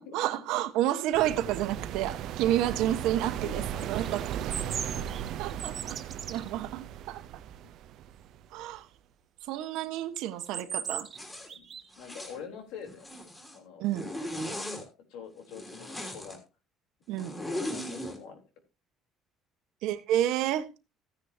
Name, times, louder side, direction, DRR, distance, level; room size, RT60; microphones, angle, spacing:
voice 1, 0.1-4.5 5.4-6.0 6.3-7.4 8.5-8.9 9.5-11.1 13.8-14.1 17.1-17.3 19.8-20.7, right 12 dB, 80° right, 1.3 m, -30 dB
sound 1, 1.1-8.8, right 10 dB, 60° right, 0.6 m, -37 dB
voice 2, 3.3-4.0 4.5-5.7 11.5-11.7 12.0-13.1 13.5-13.9 14.7-16.4 17.2-18.4, left 6 dB, 90° left, 3.7 m, -46 dB
sound 2, 3.8-6.5 10.2-11.2 11.5-11.9, right 7 dB, 35° right, 1.4 m, -37 dB
Zipper (clothing), 11.1-11.5 11.9-12.4 12.9-13.6 13.9-14.8 15.5-16.4 17.2-18.2, left 1 dB, 15° left, 3.2 m, -38 dB
15.0 x 10.0 x 2.8 m
cardioid pair, 155°, 0 cm